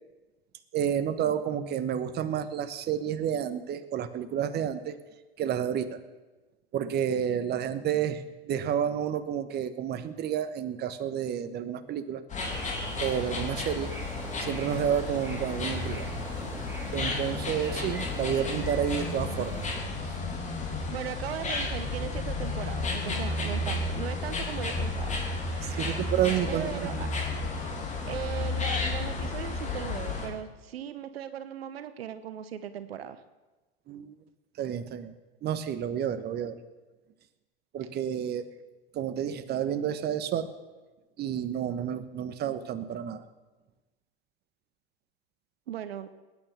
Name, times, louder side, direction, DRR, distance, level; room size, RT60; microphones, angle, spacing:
voice 1, 0.7-5.0 5.4-6.0 6.7-12.2 13.0-13.9 14.4-16.1 16.9-19.6 25.6-27.1 33.9-34.2 34.6-35.1 35.4-36.6 37.7-38.4 38.9-40.5 41.2-43.2, right 9 dB, 30° right, 10 dB, 1.2 m, -30 dB
sound 1, 12.3-30.3, left 3 dB, 25° left, 3.2 m, -32 dB
sound 2, 12.4-19.7, equal, 10° right, 2.7 m, -41 dB
voice 2, 20.9-25.1 25.5-26.0 26.5-27.1 28.1-33.2 45.7-46.1, right 10 dB, 70° right, 11 dB, 1.0 m, -38 dB
20.0 x 9.6 x 6.8 m, 1.2 s
hypercardioid pair, 90°, 31 cm